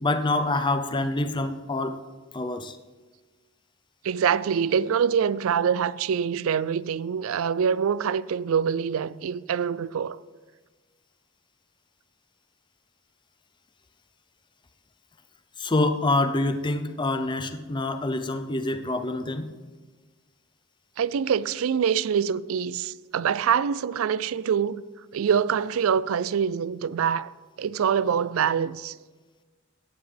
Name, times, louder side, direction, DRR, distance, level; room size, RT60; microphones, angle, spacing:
voice 1, 0.0-2.0 2.3-2.8 15.6-19.5, left 2 dB, 20° left, 0.6 m, -26 dB
voice 2, 4.0-10.2 21.0-24.8 25.1-27.3 27.6-29.0, right 7 dB, 70° right, 0.4 m, -25 dB
15.0 x 9.4 x 3.4 m
head